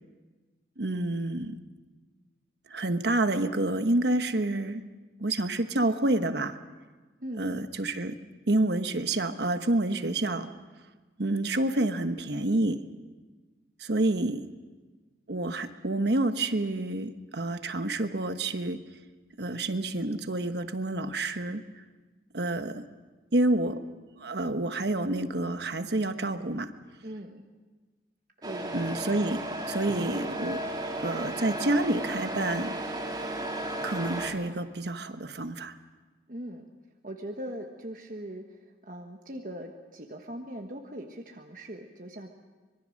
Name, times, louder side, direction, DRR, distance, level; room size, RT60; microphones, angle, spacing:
voice 1, 0.8-1.6 2.7-4.8 5.2-6.6 7.4-8.2 8.5-10.5 11.2-12.8 13.8-14.4 15.3-18.8 19.4-21.6 22.3-22.9 23.3-23.8 24.2-26.7 28.7-30.6 31.0-32.8 33.8-35.8, right 2 dB, 65° right, 9 dB, 1.2 m, -28 dB
voice 2, 27.0-27.5 28.4-29.0 36.3-36.6 37.0-42.3, right 1 dB, 45° right, 3 dB, 1.3 m, -40 dB
Truck, 28.4-34.3, right 1 dB, 20° right, 3.0 m, -34 dB
25.0 x 22.5 x 6.5 m, 1.3 s
head